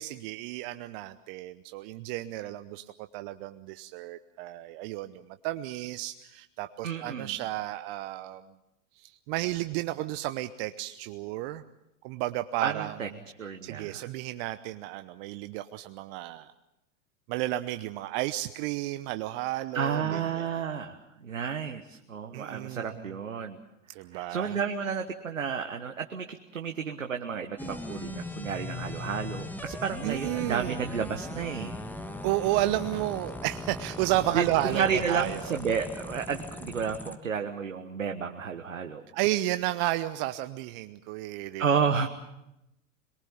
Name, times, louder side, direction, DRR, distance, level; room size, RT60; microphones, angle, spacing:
voice 1, 0.0-2.9 3.1-8.4 9.0-11.6 12.0-13.0 13.6-16.5 17.3-20.6 22.3-23.1 23.9-24.6 30.0-30.8 32.2-35.5 39.1-41.9, right 16 dB, 45° right, 11 dB, 0.9 m, -32 dB
voice 2, 6.8-7.3 12.6-13.1 13.4-14.1 19.5-23.6 24.1-31.8 34.3-39.0 41.6-42.1, right 6 dB, 85° right, 5 dB, 1.3 m, -31 dB
sound 1, 27.6-37.1, left 1 dB, 5° left, 1.4 m, -39 dB
22.5 x 22.5 x 7.1 m, 0.88 s
figure-of-eight pair, 90°, 38 cm